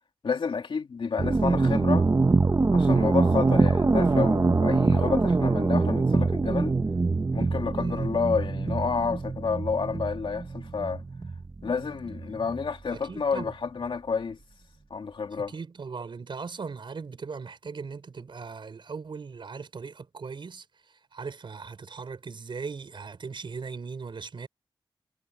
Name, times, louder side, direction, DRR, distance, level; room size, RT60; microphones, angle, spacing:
voice 1, 0.2-2.1 2.7-6.7 7.3-11.0 11.6-14.4 14.9-15.5, left 5 dB, 75° left, 2.8 m, -30 dB
sound 1, 1.2-12.7, right 3 dB, 35° right, 1.1 m, -24 dB
voice 2, 7.7-8.1 12.9-13.5 15.5-20.7 21.1-24.5, right 5 dB, 65° right, 5.2 m, -38 dB
wide cardioid pair, 135°, 9 cm